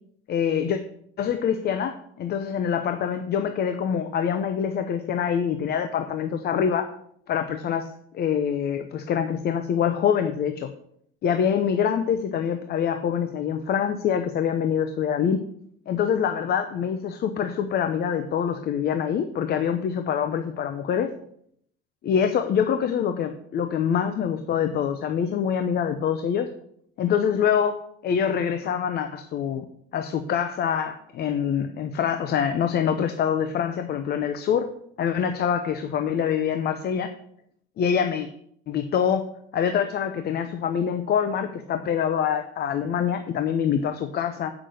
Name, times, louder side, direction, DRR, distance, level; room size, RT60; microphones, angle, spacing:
voice 1, 0.3-0.8 1.2-6.8 7.3-7.9 8.1-10.7 11.2-15.4 15.9-21.1 22.0-26.5 27.0-29.7 29.9-34.7 35.0-37.1 37.8-38.3 38.7-39.2 39.5-44.5, left 8 dB, 50° left, 8 dB, 0.7 m, -25 dB
8.3 x 6.0 x 6.3 m, 0.68 s
cardioid pair, 135°, 21 cm